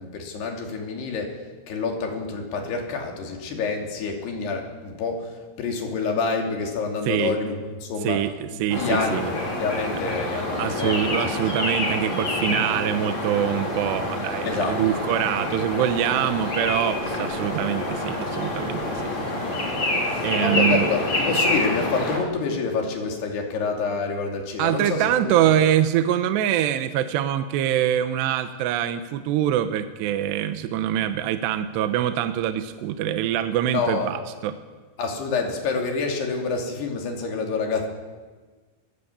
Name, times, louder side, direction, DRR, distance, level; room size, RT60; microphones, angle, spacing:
voice 1, 0.0-1.4 1.7-8.2 8.7-11.4 14.4-14.8 20.1-25.4 33.7-34.3 35.0-37.9, left 4 dB, 65° left, 2 dB, 4.7 m, -27 dB
voice 2, 8.0-9.3 10.6-19.1 20.2-20.9 24.6-34.5, right 11 dB, 80° right, 9 dB, 2.9 m, -24 dB
sound 1, 8.7-22.2, left 1 dB, 30° left, 4.0 m, -27 dB
22.5 x 14.5 x 8.4 m, 1.4 s
omnidirectional pair, 5.1 m